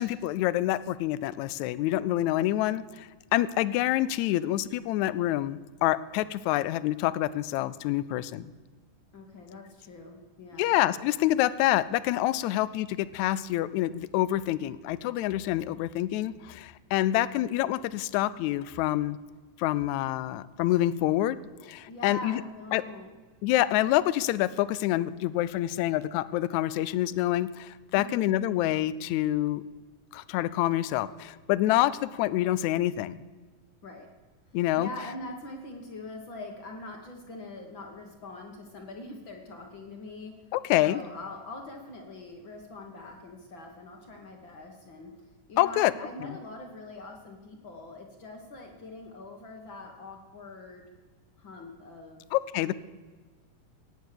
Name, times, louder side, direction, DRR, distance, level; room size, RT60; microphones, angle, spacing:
voice 1, 0.0-8.5 10.6-19.2 19.6-21.4 21.6-22.4 22.7-22.8 23.4-29.6 30.1-33.2 34.5-34.9 40.5-41.0 45.6-45.9 52.3-52.7, left 14 dB, 80° left, 17 dB, 1.7 m, -27 dB
voice 2, 9.1-10.7 12.4-12.5 21.9-23.1 27.9-28.2 33.8-34.1 34.8-40.3 40.8-45.1 45.5-50.9 51.4-52.2 52.6-52.7, left 2 dB, 50° left, 3 dB, 1.7 m, -43 dB
17.5 x 9.2 x 6.7 m, 1.3 s
omnidirectional pair, 3.8 m